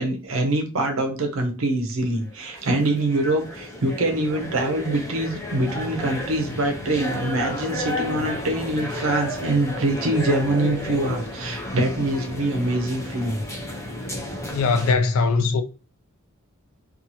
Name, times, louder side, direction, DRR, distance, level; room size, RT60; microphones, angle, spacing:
voice 1, 0.0-13.4 15.4-15.5, right 2 dB, 70° right, 0.6 m, -24 dB
sound 1, 2.2-14.9, left 1 dB, 15° left, 0.6 m, -32 dB
voice 2, 14.5-15.6, left 4 dB, 75° left, 0.4 m, -20 dB
2.7 x 2.4 x 2.7 m
head